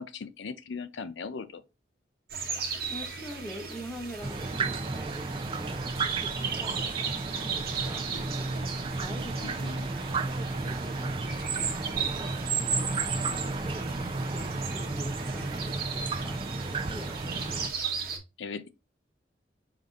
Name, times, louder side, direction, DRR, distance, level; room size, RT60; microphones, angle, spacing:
voice 1, 0.0-1.6 9.4-9.9 18.4-18.7, left 5 dB, 75° left, 0.5 m, -38 dB
sound 1, 2.3-18.2, right 6 dB, 50° right, 1.0 m, -35 dB
voice 2, 2.9-17.7, equal, 5° left, 0.8 m, -45 dB
sound 2, 4.2-17.7, right 3 dB, 25° right, 0.4 m, -33 dB
5.1 x 2.7 x 3.6 m
head